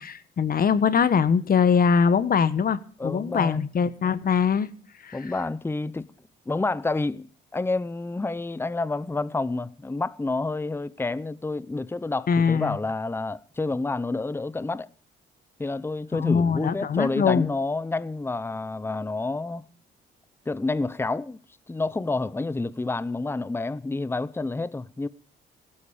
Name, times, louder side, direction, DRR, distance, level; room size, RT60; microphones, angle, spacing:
voice 1, 0.0-4.7 5.0-5.2 12.3-12.8 16.1-17.5, left 6 dB, 45° left, 1.3 m, -22 dB
voice 2, 3.0-3.7 5.1-6.1 6.5-14.9 15.6-19.7 20.5-21.4 21.7-25.1, left 3 dB, 10° left, 0.7 m, -29 dB
17.0 x 13.0 x 5.0 m
cardioid pair, 90°, 20 cm